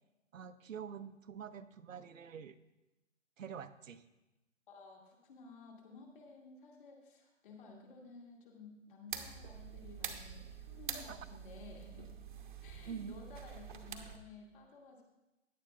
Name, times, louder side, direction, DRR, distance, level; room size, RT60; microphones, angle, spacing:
voice 1, 0.3-2.6 3.4-4.0 10.9-11.2 12.9-13.2, right 7 dB, 80° right, 10 dB, 0.8 m, -46 dB
voice 2, 4.7-12.1 12.6-15.0, left 4 dB, 40° left, -1 dB, 2.4 m, -55 dB
sound 1, 9.1-14.2, right 7 dB, 40° right, 0.9 m, -46 dB
16.5 x 10.5 x 2.5 m, 1.0 s
hypercardioid pair, 165°, 39 cm